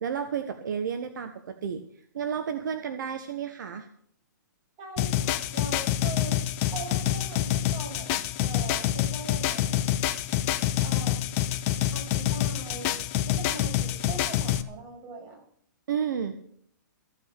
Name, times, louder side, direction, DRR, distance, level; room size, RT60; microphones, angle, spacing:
voice 1, 0.0-1.8 2.1-3.9 15.9-16.3, right 7 dB, 70° right, 9 dB, 1.3 m, -31 dB
voice 2, 4.8-9.9 10.8-11.3 11.9-13.0 13.3-15.4, right 3 dB, 30° right, 0 dB, 7.2 m, -41 dB
sound 1, 5.0-14.6, left 12 dB, 35° left, 1.0 m, -27 dB
15.5 x 9.2 x 6.7 m, 0.65 s
hypercardioid pair, 140°, 11 cm